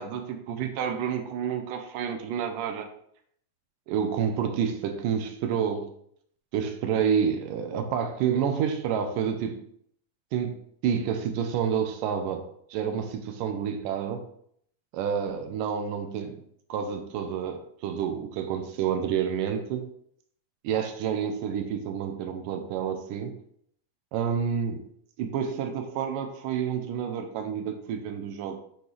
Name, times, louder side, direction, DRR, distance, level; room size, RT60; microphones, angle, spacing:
voice 1, 0.0-2.9 3.9-5.9 6.5-9.6 10.3-12.4 12.7-14.3 14.9-16.4 16.7-19.9 20.6-23.3 24.1-24.8 25.2-28.6, right 7 dB, 85° right, 6 dB, 2.2 m, -29 dB
9.4 x 3.9 x 3.3 m, 0.66 s
omnidirectional pair, 3.9 m